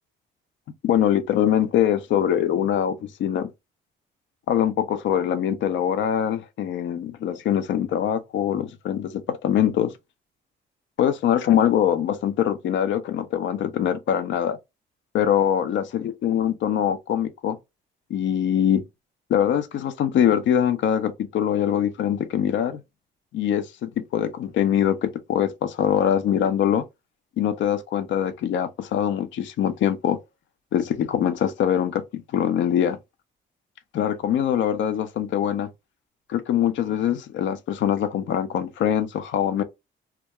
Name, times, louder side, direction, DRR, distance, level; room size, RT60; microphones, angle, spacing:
voice 1, 0.8-3.5 4.5-9.9 11.0-14.6 15.1-17.6 18.1-18.8 19.3-22.8 23.3-26.8 27.4-30.2 30.7-33.0 33.9-35.7 36.3-39.6, left 9 dB, 70° left, 0.5 m, -23 dB
2.3 x 2.1 x 2.8 m
cardioid pair, 90°, 20 cm